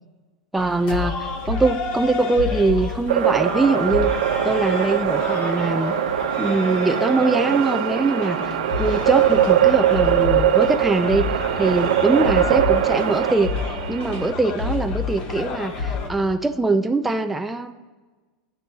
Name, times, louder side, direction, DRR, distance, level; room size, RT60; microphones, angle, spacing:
voice 1, 0.5-4.2 4.4-5.9 6.4-13.5 13.9-17.7, right 2 dB, 5° right, 6 dB, 0.4 m, -22 dB
sound 1, 0.6-16.1, left 4 dB, 30° left, 1.2 m, -30 dB
sound 2, 3.1-13.3, right 11 dB, 90° right, 0.8 m, -21 dB
sound 3, 7.3-14.3, right 10 dB, 70° right, 1.2 m, -36 dB
23.0 x 9.9 x 2.8 m, 1.3 s
supercardioid pair, 160°, 4 cm